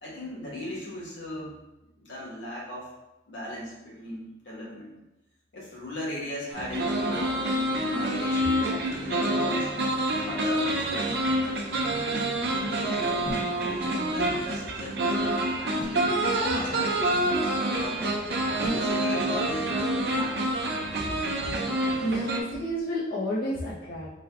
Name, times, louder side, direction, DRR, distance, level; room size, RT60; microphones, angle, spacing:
voice 1, 0.0-1.6 2.0-2.9 3.3-4.9 5.5-9.7 10.0-11.3 12.0-15.2 15.6-17.3 17.7-18.1 18.7-20.5, left 1 dB, 90° left, -5 dB, 1.4 m, -38 dB
sound 1, 6.5-22.4, right 1 dB, 60° right, 0.5 m, -27 dB
sound 2, 10.4-19.7, equal, 35° left, 1.2 m, -43 dB
voice 2, 22.0-24.1, equal, 50° left, -8 dB, 0.9 m, -30 dB
4.9 x 2.3 x 3.5 m, 0.97 s
head